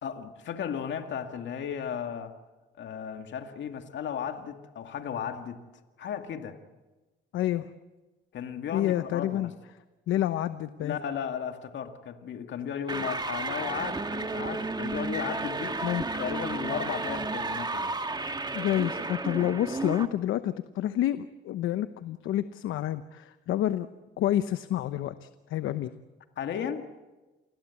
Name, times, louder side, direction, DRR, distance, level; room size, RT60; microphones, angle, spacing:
voice 1, 0.0-2.3 2.8-5.6 6.0-6.6 8.3-9.5 10.8-15.8 16.2-18.0 26.4-26.9, left 8 dB, 65° left, 6 dB, 2.2 m, -35 dB
voice 2, 7.3-7.7 8.7-9.5 10.1-11.0 15.8-16.1 18.5-23.9 24.2-25.9, left 12 dB, 85° left, 11 dB, 1.0 m, -29 dB
sound 1, 12.9-20.1, right 3 dB, 20° right, 1.8 m, -32 dB
29.0 x 21.0 x 8.5 m, 1.1 s
cardioid pair, 90°, 20 cm